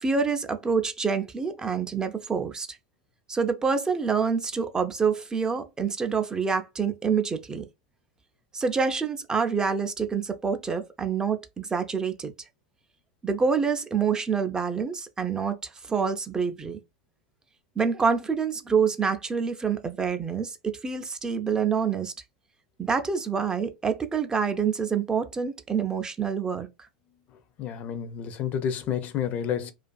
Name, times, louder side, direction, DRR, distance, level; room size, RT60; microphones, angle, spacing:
voice 1, 0.0-2.8 3.3-7.7 8.5-12.3 13.2-16.8 17.8-22.1 22.8-26.7, right 6 dB, 15° right, 0.4 m, -27 dB
voice 2, 27.6-29.7, left 8 dB, 40° left, 0.5 m, -30 dB
2.4 x 2.4 x 2.2 m
hypercardioid pair, 85°, 4 cm